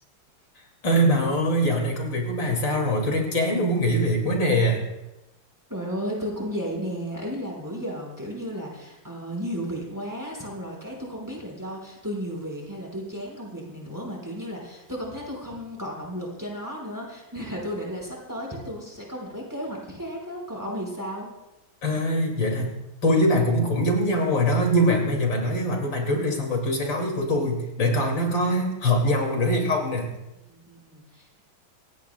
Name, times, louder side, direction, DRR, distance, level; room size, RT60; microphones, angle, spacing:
voice 1, 0.8-4.8 21.8-22.7 23.0-30.1, equal, 65° left, 1 dB, 3.0 m, -23 dB
voice 2, 5.7-21.3 30.5-31.4, equal, 10° right, -2 dB, 4.7 m, -34 dB
26.0 x 17.5 x 2.2 m, 0.95 s
omnidirectional pair, 2.2 m